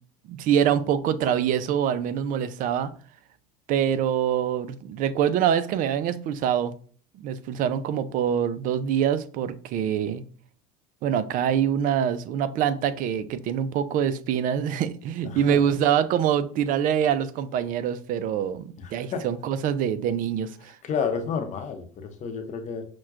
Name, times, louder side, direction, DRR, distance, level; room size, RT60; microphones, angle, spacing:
voice 1, 0.3-2.9 3.7-6.7 7.1-10.2 11.0-20.8, right 9 dB, 45° right, 0.4 m, -25 dB
voice 2, 15.2-15.6 19.1-19.2 20.8-22.9, left 6 dB, 40° left, 0.7 m, -30 dB
5.8 x 2.2 x 2.4 m
supercardioid pair, 95°, 19 cm